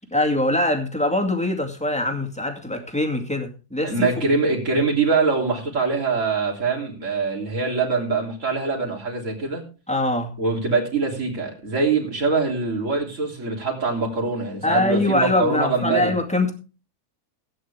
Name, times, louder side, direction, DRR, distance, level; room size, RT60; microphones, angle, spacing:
voice 1, 0.1-4.1 9.9-10.3 14.6-16.5, left 1 dB, 5° left, 2.2 m, -23 dB
voice 2, 3.8-9.6 10.4-16.1, right 4 dB, 50° right, 3.6 m, -23 dB
16.5 x 9.4 x 3.4 m
omnidirectional pair, 1.6 m